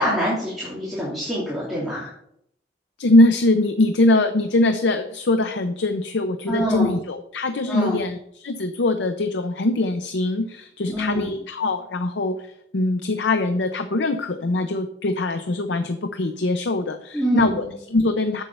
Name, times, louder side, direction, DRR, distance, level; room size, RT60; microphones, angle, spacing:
voice 1, 0.0-2.1 6.5-6.9 7.7-8.0 10.9-11.3 17.1-17.7, equal, ahead, -8 dB, 3.1 m, -25 dB
voice 2, 3.0-18.4, left 2 dB, 85° left, 8 dB, 0.6 m, -22 dB
7.9 x 7.2 x 5.5 m, 0.72 s
head